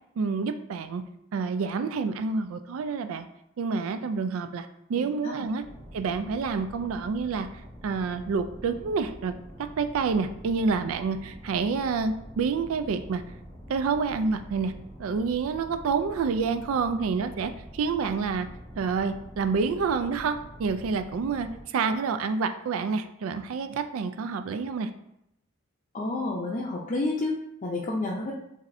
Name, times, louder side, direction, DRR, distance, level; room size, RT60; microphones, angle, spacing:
voice 1, 0.2-1.0 1.3-3.3 3.6-5.6 5.9-7.5 7.8-13.2 13.7-14.7 15.0-18.5 18.8-24.9, right 5 dB, 85° right, 9 dB, 0.4 m, -28 dB
sound 1, 5.6-21.6, equal, 35° right, 1.3 m, -46 dB
voice 2, 25.9-28.3, left 2 dB, 35° left, -4 dB, 0.5 m, -30 dB
7.1 x 2.7 x 2.6 m, 0.80 s
head